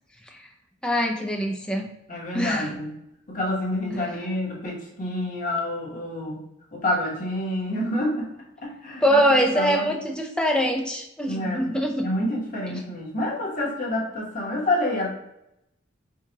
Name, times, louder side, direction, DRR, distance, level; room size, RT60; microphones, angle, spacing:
voice 1, 0.8-1.9 2.3-2.8 3.9-4.0 9.0-12.1 12.7-12.8, equal, 5° left, 2 dB, 0.4 m, -24 dB
voice 2, 2.1-2.9 3.3-6.4 6.7-8.3 8.6-9.2 9.5-10.0 11.3-11.7 12.0-15.1, left 1 dB, 45° left, -3 dB, 1.1 m, -28 dB
4.6 x 2.4 x 2.8 m, 0.84 s
head